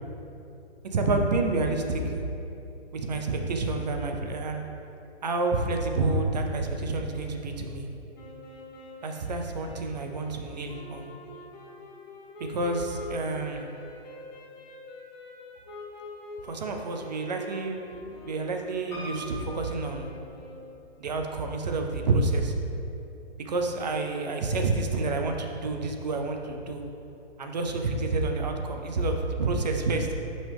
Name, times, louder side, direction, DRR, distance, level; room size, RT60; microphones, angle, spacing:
voice 1, 0.9-2.2 2.9-4.6 5.2-7.9 9.0-11.1 12.4-13.7 16.4-20.1 21.0-22.5 23.4-26.8 27.4-30.1, right 3 dB, 40° right, 3 dB, 0.6 m, -29 dB
sound 1, 8.1-20.8, left 2 dB, 40° left, 1.4 m, -45 dB
Piano, 18.9-20.9 21.5-22.2 22.5-22.6 22.8-22.9, equal, 10° left, 1.0 m, -43 dB
9.0 x 5.3 x 3.4 m, 2.8 s
hypercardioid pair, 175°, 33 cm